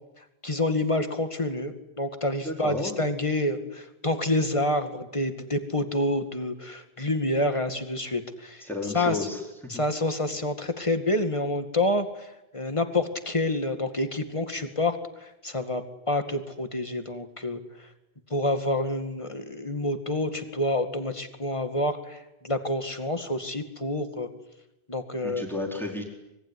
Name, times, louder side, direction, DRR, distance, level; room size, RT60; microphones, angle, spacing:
voice 1, 0.4-8.6 8.9-9.3 9.7-12.3 12.5-17.6 18.3-24.3 24.9-25.4, left 1 dB, 30° left, 7 dB, 2.3 m, -28 dB
voice 2, 2.4-2.9 8.6-9.4 9.7-9.8 25.2-26.0, left 2 dB, ahead, 0 dB, 4.5 m, -32 dB
25.5 x 22.0 x 9.9 m, 0.93 s
omnidirectional pair, 1.1 m